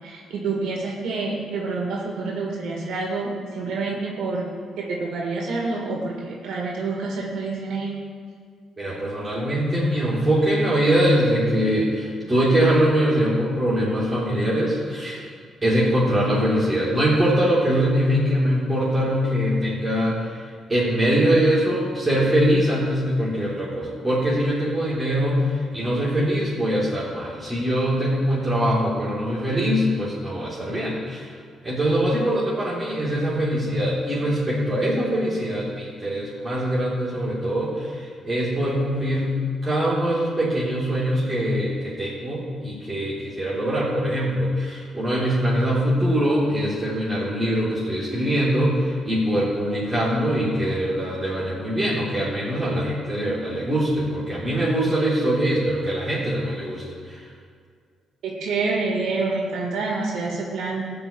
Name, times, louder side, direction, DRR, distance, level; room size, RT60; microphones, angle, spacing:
voice 1, 0.0-4.5 4.8-8.0 58.2-60.8, right 3 dB, 80° right, -2 dB, 1.9 m, -27 dB
voice 2, 8.8-15.2 15.6-20.3 20.7-31.3 31.6-39.4 39.6-57.2, equal, 20° right, -9 dB, 3.5 m, -23 dB
13.5 x 5.1 x 8.9 m, 2.1 s
cardioid pair, 90°, 0 cm